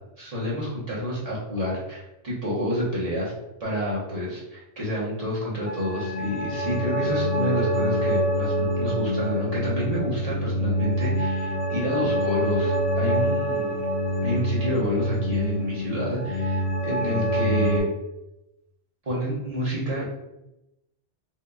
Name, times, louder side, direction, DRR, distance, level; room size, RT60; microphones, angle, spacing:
voice 1, 0.2-3.3 3.6-13.8 14.2-17.9 19.0-20.1, equal, 35° right, -7 dB, 1.1 m, -29 dB
sound 1, 5.6-17.8, equal, 60° right, 0.9 m, -26 dB
4.1 x 2.5 x 2.3 m, 0.90 s
omnidirectional pair, 1.1 m